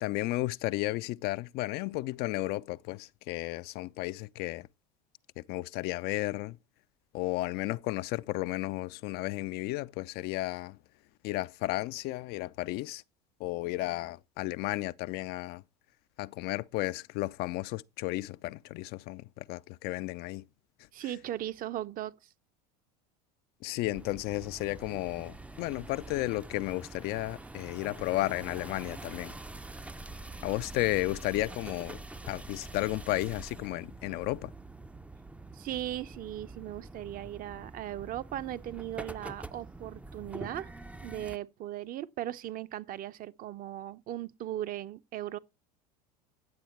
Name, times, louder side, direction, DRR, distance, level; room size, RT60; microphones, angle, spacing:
voice 1, 0.0-4.7 5.4-6.6 7.1-10.8 11.2-13.0 13.4-15.6 16.2-20.4 23.6-29.3 30.4-32.0 32.3-34.5, left 18 dB, 55° left, 0.5 m, -33 dB
voice 2, 20.9-22.2 35.5-40.7 41.0-45.4, right 13 dB, 45° right, 0.8 m, -38 dB
sound 1, 23.9-41.4, right 2 dB, 5° right, 0.5 m, -45 dB
10.5 x 7.8 x 4.4 m
hypercardioid pair, 85°, 20 cm